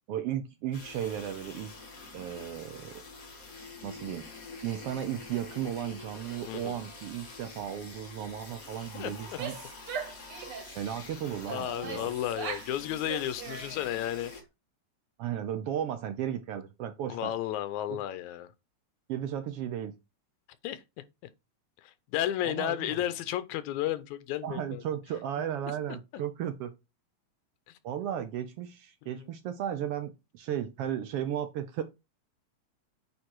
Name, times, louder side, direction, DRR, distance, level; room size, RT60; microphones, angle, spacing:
voice 1, 0.1-1.7 2.1-3.0 3.8-4.3 4.6-9.6 10.7-12.1 15.2-17.3 17.9-18.0 19.1-19.9 22.4-23.0 24.4-26.7 27.8-31.8, right 10 dB, 80° right, 1.3 m, -35 dB
sound 1, 0.7-14.4, left 3 dB, 35° left, 1.9 m, -47 dB
voice 2, 6.5-6.8 9.0-9.1 11.5-14.3 17.1-18.5 20.6-20.8 21.8-24.8 29.0-29.2, left 12 dB, 85° left, 2.1 m, -33 dB
Female speech woman speaking / Yell, 9.2-10.8 11.4-12.7 13.0-14.0, right 6 dB, 55° right, 2.1 m, -40 dB
8.6 x 3.7 x 4.5 m
omnidirectional pair, 3.4 m